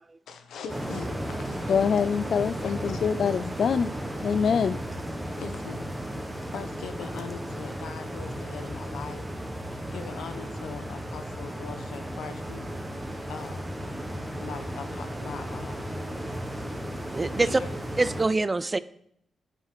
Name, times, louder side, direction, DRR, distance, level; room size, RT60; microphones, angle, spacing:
voice 1, 0.3-2.2 2.6-3.0 5.4-5.9 6.5-9.3 9.9-12.7 13.3-13.7 14.4-15.9 17.4-17.7, left 6 dB, 85° left, 9 dB, 1.1 m, -41 dB
sound 1, 0.7-18.3, equal, 5° right, 1.6 m, -35 dB
voice 2, 1.7-3.9 4.2-4.8, left 6 dB, 65° left, 14 dB, 0.3 m, -24 dB
voice 3, 16.7-17.6 18.0-18.8, right 3 dB, 25° right, 15 dB, 0.5 m, -25 dB
11.0 x 4.7 x 5.9 m, 0.69 s
cardioid pair, 75°, 0 cm